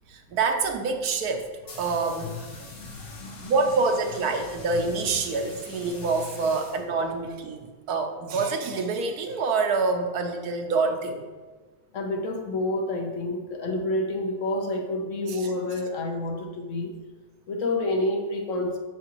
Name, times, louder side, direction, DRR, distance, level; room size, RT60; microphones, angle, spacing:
voice 1, 0.1-2.4 3.4-11.3 15.3-15.5, right 4 dB, 80° right, 5 dB, 1.3 m, -26 dB
sound 1, 1.3-7.3, left 2 dB, 75° left, 1.9 m, -47 dB
voice 2, 2.5-3.5 11.9-16.9 17.5-18.8, left 2 dB, 60° left, 3 dB, 1.1 m, -29 dB
7.5 x 7.1 x 3.0 m, 1.4 s
omnidirectional pair, 1.6 m